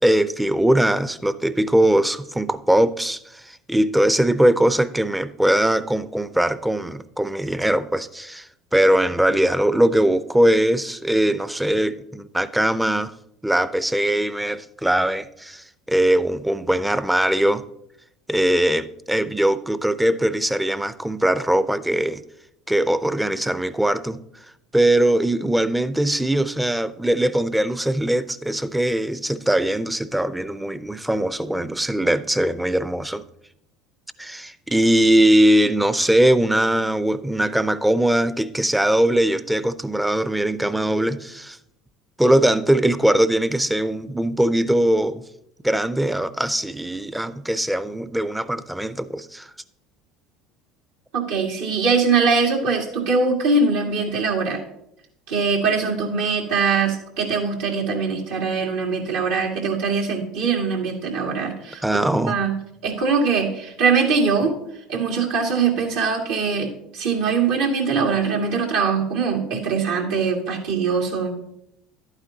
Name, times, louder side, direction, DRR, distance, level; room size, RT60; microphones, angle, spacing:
voice 1, 0.0-13.1 13.4-17.6 18.3-22.2 22.7-24.2 24.7-33.2 34.2-41.6 42.2-45.2 45.6-49.5 61.8-62.4, right 1 dB, 5° right, 0.5 m, -21 dB
voice 2, 51.1-54.6 55.3-61.8 62.3-62.6 62.8-64.6 64.9-71.3, right 5 dB, 75° right, 2.1 m, -22 dB
11.0 x 9.0 x 2.8 m
hypercardioid pair, 80°, 0 cm